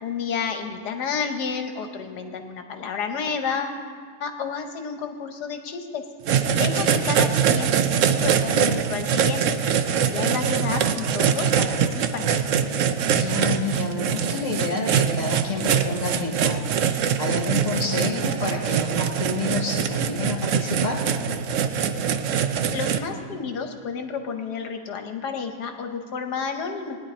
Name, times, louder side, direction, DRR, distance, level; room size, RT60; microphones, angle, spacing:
voice 1, 0.0-3.8 4.2-6.0 6.5-7.9 8.2-9.4 9.9-12.2 22.7-27.0, left 6 dB, 70° left, 5 dB, 1.4 m, -30 dB
sound 1, 6.3-23.0, right 7 dB, 65° right, 0.8 m, -23 dB
voice 2, 13.1-16.6 17.2-21.0, left 3 dB, 50° left, 0 dB, 1.7 m, -29 dB
19.0 x 10.0 x 4.3 m, 2.1 s
omnidirectional pair, 1.8 m